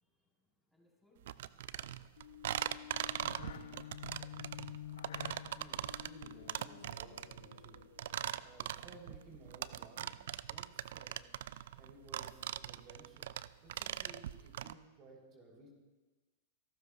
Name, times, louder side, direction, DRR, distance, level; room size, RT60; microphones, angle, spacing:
voice 1, 0.0-4.5, left 1 dB, ahead, -3 dB, 4.0 m, -69 dB
sound 1, 1.2-14.7, right 12 dB, 65° right, 0.3 m, -41 dB
sound 2, 2.2-8.6, left 11 dB, 70° left, 0.4 m, -50 dB
voice 2, 5.5-7.8 8.4-13.3 13.6-15.7, right 2 dB, 35° right, -1 dB, 3.5 m, -58 dB
29.5 x 12.5 x 2.4 m, 1.2 s
hypercardioid pair, 105°, 0 cm